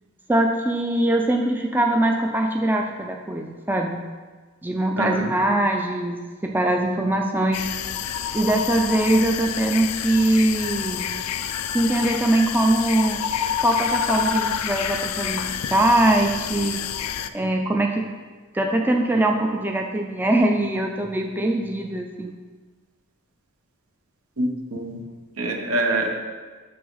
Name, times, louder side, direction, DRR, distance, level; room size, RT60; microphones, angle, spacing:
voice 1, 0.3-4.0 4.6-7.7 8.3-11.2 11.7-13.2 13.6-16.8 17.3-18.1 18.5-22.3, right 1 dB, 10° right, 2 dB, 0.4 m, -22 dB
voice 2, 5.0-5.3 24.4-25.0 25.4-26.2, right 2 dB, 75° right, 2 dB, 1.1 m, -25 dB
sound 1, 7.5-17.3, left 8 dB, 85° left, 0.4 m, -28 dB
7.6 x 5.9 x 3.9 m, 1.4 s
head